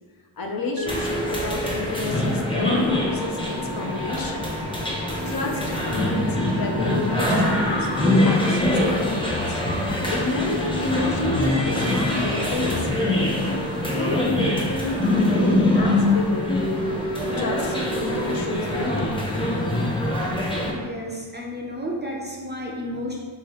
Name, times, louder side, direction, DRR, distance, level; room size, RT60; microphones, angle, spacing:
voice 1, 0.4-4.5 5.2-9.6 10.1-13.6 13.9-16.5 17.4-19.1, left 3 dB, 50° left, 1 dB, 0.6 m, -29 dB
Mallet percussion, 0.8-3.7, right 4 dB, 65° right, 0.7 m, -35 dB
sound 1, 0.9-20.7, left 1 dB, 10° left, 0.7 m, -24 dB
voice 2, 20.7-23.2, equal, 25° right, -3 dB, 0.4 m, -32 dB
3.6 x 2.8 x 3.3 m, 1.5 s
wide cardioid pair, 90°, 48 cm